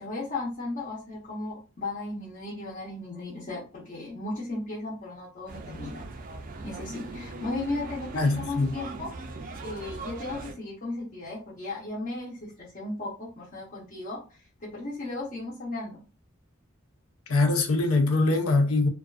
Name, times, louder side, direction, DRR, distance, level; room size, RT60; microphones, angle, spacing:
voice 1, 0.0-6.1 6.6-9.1 9.6-16.0, left 2 dB, 40° left, 0.7 m, -36 dB
sound 1, 5.5-10.5, right 2 dB, 40° right, 0.3 m, -40 dB
voice 2, 8.1-8.7 17.3-18.9, left 2 dB, 80° left, 0.5 m, -23 dB
2.4 x 2.3 x 2.3 m
head